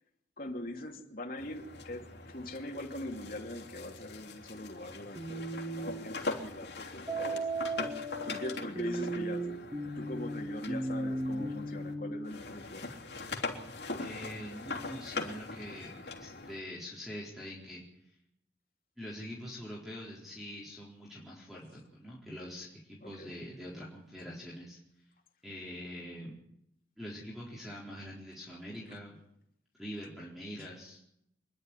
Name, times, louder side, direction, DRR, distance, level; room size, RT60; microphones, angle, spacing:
voice 1, 0.4-7.4 7.8-7.9 8.2-9.7 10.0-12.9 23.0-23.3, left 1 dB, 50° left, 2 dB, 2.9 m, -42 dB
sound 1, 1.4-11.9 12.3-16.6, left 3 dB, 70° left, 3.3 m, -42 dB
sound 2, 5.2-6.0 7.1-12.1, right 2 dB, 20° right, 3.6 m, -36 dB
voice 2, 14.0-17.8 19.0-24.8 25.4-26.4 27.0-29.2 29.8-31.0, equal, ahead, -4 dB, 4.3 m, -44 dB
25.5 x 11.5 x 9.9 m, 0.76 s
head